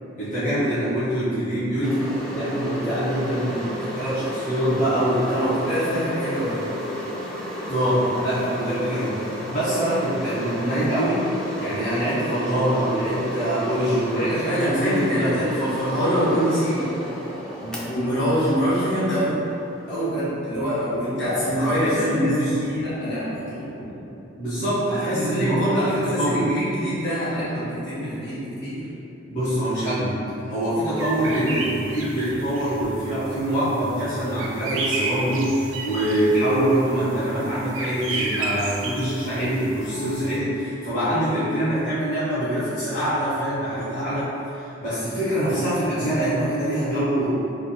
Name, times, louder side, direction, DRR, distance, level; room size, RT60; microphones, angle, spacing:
voice 1, 0.2-3.6 3.9-5.6 7.7-11.2 11.6-15.4 21.2-22.0 22.2-22.5 23.3-23.4 24.4-26.5 29.3-30.2 30.5-47.4, right 1 dB, 40° left, -13 dB, 1.0 m, -24 dB
sound 1, 1.8-20.3, equal, 5° left, 0.4 m, -33 dB
voice 2, 4.9-6.7 14.1-16.9 17.6-19.4 19.9-24.0 25.0-28.9, equal, 65° left, -11 dB, 1.3 m, -25 dB
sound 2, 31.0-40.4, right 2 dB, 75° right, 0.5 m, -32 dB
3.3 x 2.1 x 4.0 m, 2.8 s
head